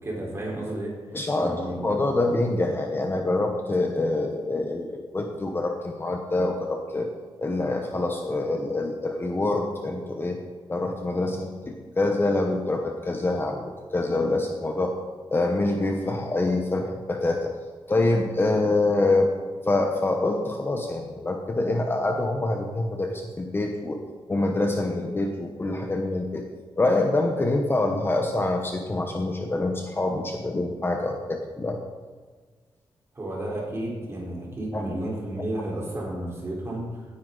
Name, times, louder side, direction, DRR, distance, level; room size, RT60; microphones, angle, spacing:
voice 1, 0.0-0.9 1.4-1.9 33.1-37.1, right 1 dB, 30° right, -3 dB, 4.0 m, -32 dB
voice 2, 1.1-7.1 7.4-10.4 10.7-14.9 15.3-17.5 17.9-19.3 19.7-24.0 24.3-26.4 26.8-31.8 34.7-34.8 35.4-35.5, left 2 dB, 25° left, 3 dB, 1.0 m, -25 dB
17.0 x 9.9 x 3.9 m, 1.5 s
wide cardioid pair, 145°, 10 cm